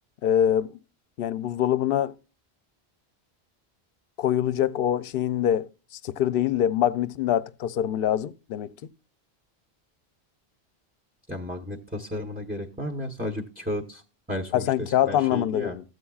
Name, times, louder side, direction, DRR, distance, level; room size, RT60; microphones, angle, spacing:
voice 1, 0.2-0.7 1.2-2.1 4.2-5.7 6.0-8.7 14.5-15.8, left 10 dB, 65° left, 0.7 m, -24 dB
voice 2, 11.3-14.0 14.3-15.8, left 1 dB, 10° right, 0.9 m, -33 dB
14.0 x 7.9 x 2.3 m
omnidirectional pair, 1.1 m